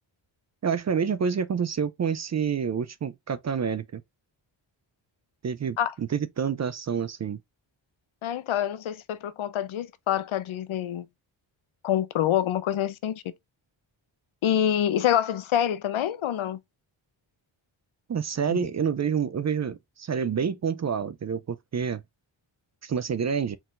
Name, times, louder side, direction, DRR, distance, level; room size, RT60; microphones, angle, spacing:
voice 1, 0.6-4.0 5.4-7.4 18.1-22.0 22.8-23.6, right 7 dB, 40° right, 0.4 m, -28 dB
voice 2, 8.2-11.1 11.8-13.2 14.4-16.6 18.5-18.6, left 10 dB, 85° left, 0.7 m, -26 dB
4.5 x 3.8 x 2.4 m
wide cardioid pair, 130°, 47 cm